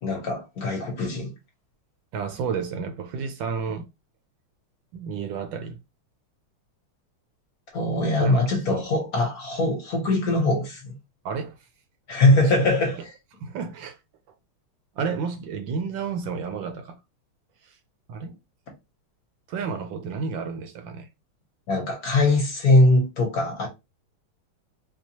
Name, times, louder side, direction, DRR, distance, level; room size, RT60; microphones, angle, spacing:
voice 1, 0.0-1.3 7.7-10.9 12.1-12.9 21.7-23.7, left 2 dB, 55° left, 1.2 m, -21 dB
voice 2, 2.1-3.9 4.9-5.8 8.2-8.4 8.7-8.8 11.2-11.6 12.3-12.7 12.9-13.0 13.4-14.0 14.9-17.0 17.6-17.8 18.1-18.4 19.5-21.1, right 5 dB, 75° right, 1.2 m, -31 dB
4.4 x 2.3 x 2.8 m
omnidirectional pair, 2.3 m